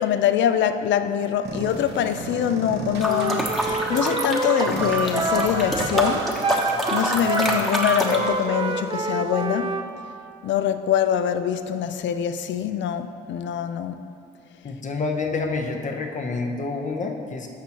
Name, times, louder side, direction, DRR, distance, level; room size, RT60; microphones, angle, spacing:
voice 1, 0.0-6.7 6.9-9.8 10.4-13.9, left 9 dB, 70° left, 0.4 m, -24 dB
sound 1, 1.4-4.0 4.7-9.4, right 3 dB, 55° right, 1.1 m, -36 dB
sound 2, 3.0-8.3, equal, ahead, 1.0 m, -27 dB
Wind instrument woodwind instrument, 3.1-9.9, right 3 dB, 25° right, 0.5 m, -27 dB
voice 2, 14.6-17.5, left 3 dB, 40° left, 0.8 m, -28 dB
11.5 x 6.1 x 3.0 m
cardioid pair, 90°, 20 cm